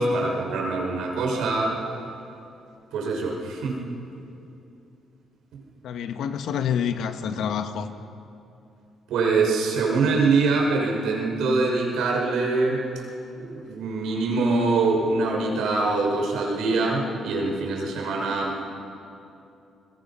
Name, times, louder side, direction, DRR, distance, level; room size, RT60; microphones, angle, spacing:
voice 1, 0.0-1.8 2.9-3.8 9.1-12.8 13.4-18.7, right 3 dB, 85° right, -1 dB, 5.8 m, -24 dB
voice 2, 5.8-7.9, left 8 dB, 75° left, 8 dB, 1.5 m, -27 dB
29.5 x 21.5 x 5.8 m, 2.7 s
cardioid pair, 90°, 0 cm